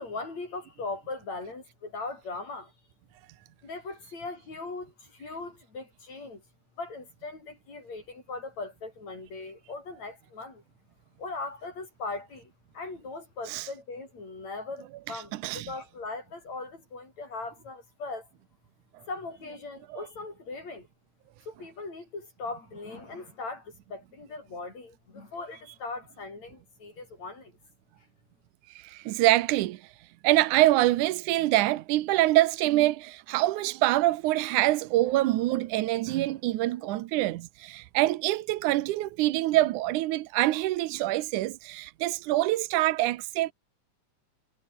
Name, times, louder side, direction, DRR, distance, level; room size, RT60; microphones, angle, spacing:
voice 1, 0.0-2.7 3.6-6.4 6.8-10.6 11.2-18.3 19.1-20.9 21.5-27.5, left 3 dB, 60° left, 9.2 m, -39 dB
voice 2, 15.1-15.7 19.9-20.0 28.8-29.8 30.2-43.5, right 16 dB, 85° right, 2.3 m, -25 dB
omnidirectional pair, 3.5 m